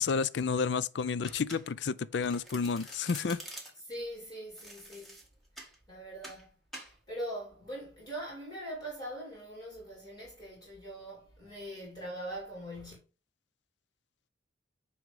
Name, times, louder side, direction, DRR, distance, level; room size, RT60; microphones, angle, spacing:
voice 1, 0.0-3.4, left 5 dB, 70° left, 0.4 m, -30 dB
Domestic sounds home sounds, 1.2-1.9 2.2-3.9 4.5-5.8 6.2-6.4 6.7-6.9, right 1 dB, ahead, 1.8 m, -47 dB
voice 2, 3.8-5.2 5.5-6.5 7.1-12.9, right 1 dB, 20° left, 2.8 m, -42 dB
9.3 x 3.1 x 5.1 m
head